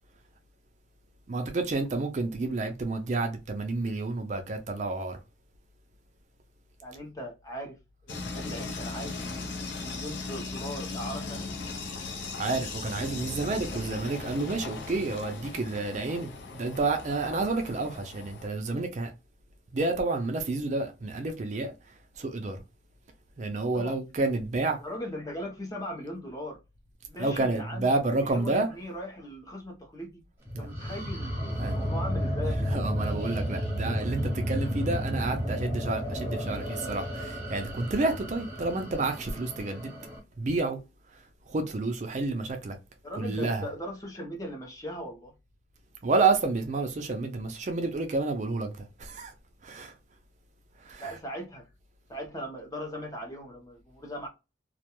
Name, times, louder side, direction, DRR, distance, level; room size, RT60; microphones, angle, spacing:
voice 1, 1.3-5.2 12.4-19.1 19.7-21.7 22.2-22.6 23.4-24.8 27.2-28.7 30.5-30.7 31.6-31.8 32.7-39.9 40.4-40.8 41.5-42.8 43.2-43.6 46.0-48.7 49.0-49.3 49.6-49.9 50.9-51.1, right 3 dB, 40° right, 0.4 m, -29 dB
voice 2, 6.8-7.8 8.0-9.3 9.8-11.5 23.7-24.0 24.8-26.6 27.0-27.9 28.2-30.2 30.6-32.8 43.0-45.3 51.0-51.7 52.1-54.3, equal, 20° left, 0.6 m, -39 dB
sound 1, 8.1-18.5, left 3 dB, 75° left, 0.6 m, -38 dB
sound 2, 30.5-40.2, equal, 10° right, 0.8 m, -32 dB
2.3 x 2.2 x 2.9 m
head